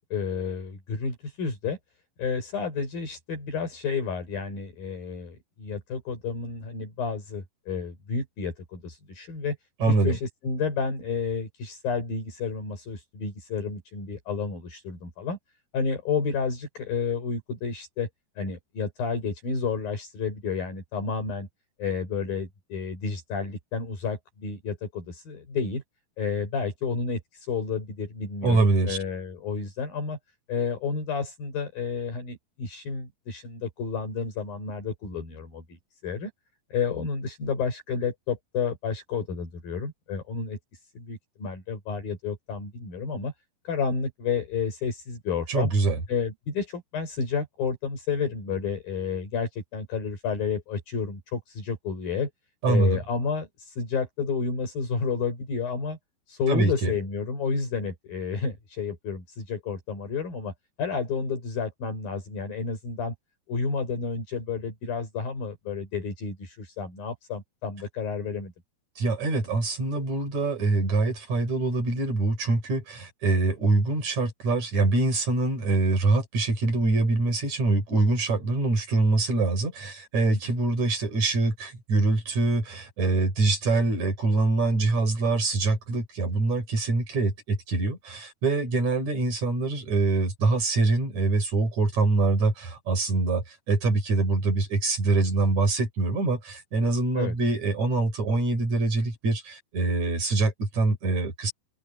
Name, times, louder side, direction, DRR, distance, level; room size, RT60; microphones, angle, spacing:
voice 1, 0.1-1.8 2.2-9.6 9.8-15.4 15.7-18.1 18.4-21.5 21.8-25.8 26.2-30.2 30.5-35.8 36.0-36.3 36.7-40.6 41.0-43.3 43.7-45.7 46.1-52.3 52.7-56.0 56.3-60.5 60.8-63.1 63.5-68.5 80.3-80.4 97.2-97.4, left 5 dB, 70° left, 7.2 m, -31 dB
voice 2, 9.8-10.2 28.4-29.0 45.5-46.0 52.6-53.0 56.5-56.9 69.0-101.5, right 3 dB, 50° right, 6.3 m, -24 dB
omnidirectional pair, 4.3 m